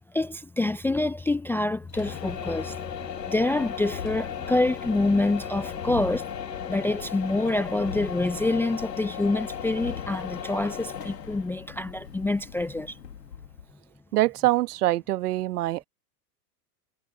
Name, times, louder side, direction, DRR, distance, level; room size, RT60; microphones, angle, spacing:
voice 1, 0.1-2.7 3.3-6.3 6.7-12.9, left 2 dB, 5° left, 0.4 m, -26 dB
sound 1, 1.8-13.7, left 8 dB, 90° left, 2.2 m, -36 dB
voice 2, 14.1-15.8, right 16 dB, 70° right, 1.4 m, -24 dB
hypercardioid pair, 95°, 48 cm